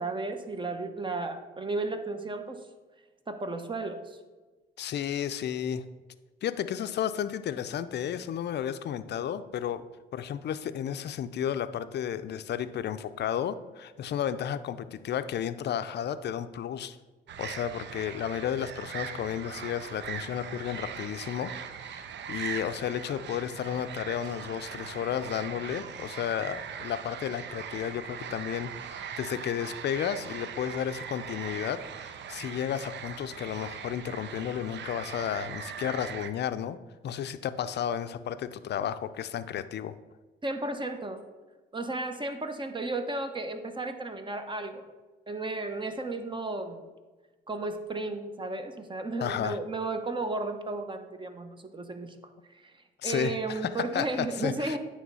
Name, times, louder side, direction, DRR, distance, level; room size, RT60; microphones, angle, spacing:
voice 1, 0.0-2.6 3.3-4.2 40.4-41.2 41.7-44.9 45.3-46.9 47.5-52.2 52.5-52.7 53.0-54.8, right 2 dB, 25° right, 7 dB, 0.9 m, -34 dB
voice 2, 4.8-5.8 6.4-9.8 10.1-17.0 17.4-21.5 21.8-36.8 37.0-39.9 49.2-49.6 53.0-54.8, left 9 dB, 55° left, 12 dB, 0.5 m, -33 dB
sound 1, 17.3-36.3, right 8 dB, 60° right, 0.6 m, -40 dB
9.3 x 3.3 x 5.4 m, 1.2 s
supercardioid pair, 65°, 21 cm